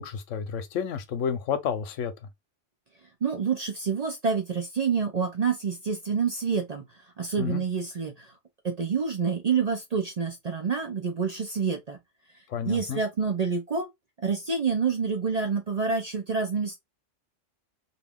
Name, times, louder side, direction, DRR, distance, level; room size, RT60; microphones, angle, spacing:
voice 1, 0.0-2.1 7.4-7.6 12.5-13.0, left 7 dB, 85° left, 1.0 m, -30 dB
voice 2, 3.2-6.8 7.2-8.3 8.6-12.0 12.6-13.9 14.2-16.8, right 5 dB, 50° right, 0.5 m, -27 dB
2.6 x 2.5 x 3.4 m
omnidirectional pair, 1.3 m